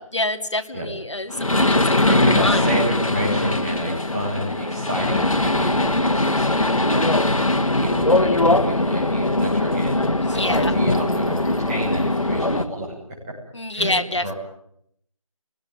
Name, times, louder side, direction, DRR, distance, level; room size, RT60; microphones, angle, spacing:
voice 1, 0.0-2.1 2.4-2.7 10.2-10.7 13.5-14.3, left 1 dB, 55° left, 4 dB, 2.7 m, -27 dB
sound 1, 1.3-12.6, left 2 dB, 75° left, 1.9 m, -21 dB
voice 2, 2.1-10.0 10.3-12.9 13.7-13.9 14.2-14.3, equal, 5° right, -9 dB, 7.0 m, -29 dB
28.0 x 21.0 x 9.7 m, 0.72 s
figure-of-eight pair, 175°, 18 cm